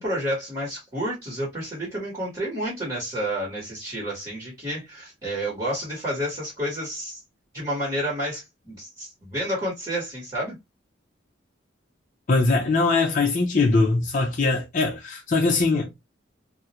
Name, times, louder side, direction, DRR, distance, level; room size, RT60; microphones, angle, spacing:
voice 1, 0.0-7.2 7.5-10.5, equal, 25° right, 1.1 m, -30 dB
voice 2, 12.3-16.1, left 3 dB, 40° left, 0.4 m, -22 dB
2.4 x 2.0 x 2.7 m
head